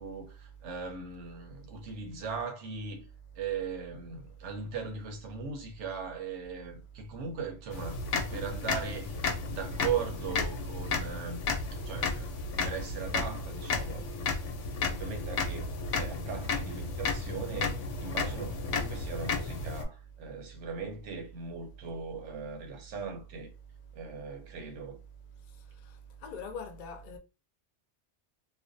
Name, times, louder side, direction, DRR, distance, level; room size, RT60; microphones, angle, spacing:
voice 1, 0.0-3.1 3.3-8.0 8.3-11.5 11.7-12.3 12.6-14.1 14.9-23.5 23.9-25.0, right 6 dB, 90° right, 1.0 m, -39 dB
sound 1, 7.7-19.8, left 4 dB, 90° left, 0.9 m, -33 dB
voice 2, 26.2-27.2, left 5 dB, 60° left, 0.5 m, -41 dB
2.5 x 2.2 x 2.5 m
omnidirectional pair, 1.2 m